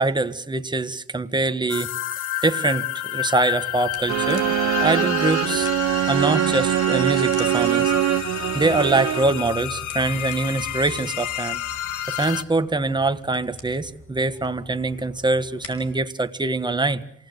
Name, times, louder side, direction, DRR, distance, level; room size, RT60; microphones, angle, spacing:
voice 1, 0.0-1.9 2.4-4.5 4.8-5.7 6.1-8.3 8.5-11.6 12.1-17.0, right 2 dB, 15° right, 9 dB, 1.4 m, -24 dB
sound 1, 1.7-12.4, left 14 dB, 85° left, 1.4 m, -30 dB
sound 2, 3.4-16.0, left 2 dB, 50° left, 5.1 m, -44 dB
sound 3, 4.1-9.5, right 13 dB, 60° right, 1.0 m, -23 dB
27.5 x 18.0 x 8.1 m, 0.75 s
cardioid pair, 90°, 30 cm